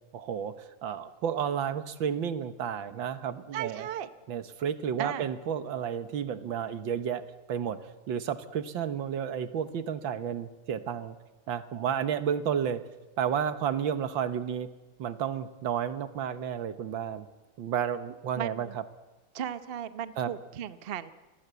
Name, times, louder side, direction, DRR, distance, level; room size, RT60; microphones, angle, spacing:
voice 1, 0.1-0.5 0.8-3.9 4.3-7.2 7.5-11.2 11.5-12.8 13.2-14.7 15.0-17.3 17.6-18.7 20.2-20.3, right 8 dB, 75° right, 11 dB, 1.9 m, -31 dB
voice 2, 3.5-4.1 5.0-5.3 18.4-18.7 19.3-21.1, right 10 dB, 40° right, 12 dB, 0.8 m, -36 dB
28.0 x 20.5 x 8.2 m, 1.2 s
omnidirectional pair, 2.1 m